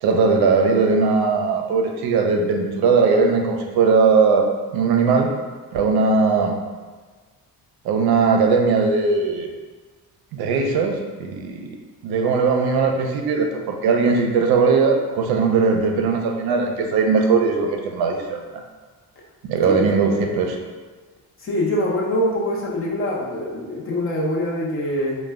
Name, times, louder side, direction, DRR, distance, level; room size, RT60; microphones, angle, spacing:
voice 1, 0.0-4.4 4.7-5.3 5.7-6.6 7.8-9.5 10.3-11.7 12.0-18.4 19.5-20.6, right 4 dB, 80° right, 2 dB, 0.5 m, -19 dB
voice 2, 19.6-20.0 21.4-25.2, left 1 dB, 35° left, -3 dB, 0.5 m, -24 dB
2.1 x 2.1 x 3.4 m, 1.4 s
cardioid pair, 135°, 37 cm